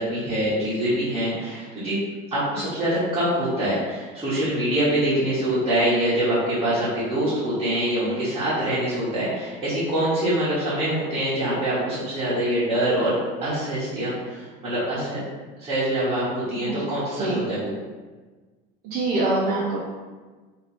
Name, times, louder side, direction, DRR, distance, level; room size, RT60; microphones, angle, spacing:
voice 1, 0.0-1.9 2.3-15.2 15.6-17.7, right 1 dB, 20° right, -12 dB, 1.3 m, -24 dB
voice 2, 18.8-19.8, right 2 dB, 45° right, -4 dB, 0.7 m, -24 dB
3.0 x 3.0 x 4.2 m, 1.3 s
cardioid pair, 155°, 21 cm